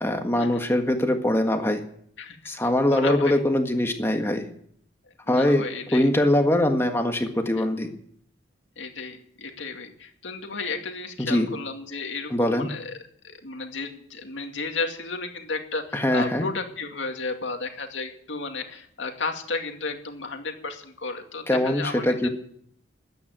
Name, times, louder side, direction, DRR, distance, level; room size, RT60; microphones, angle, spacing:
voice 1, 0.0-1.8 2.5-4.5 5.3-5.7 5.9-7.9 11.2-11.5 12.3-12.7 15.9-16.5 21.5-22.3, left 1 dB, 15° left, 4 dB, 1.6 m, -22 dB
voice 2, 2.9-3.4 5.3-6.1 8.8-13.0 13.2-22.3, left 3 dB, 85° left, 4 dB, 2.3 m, -33 dB
14.0 x 9.5 x 9.2 m, 0.66 s
head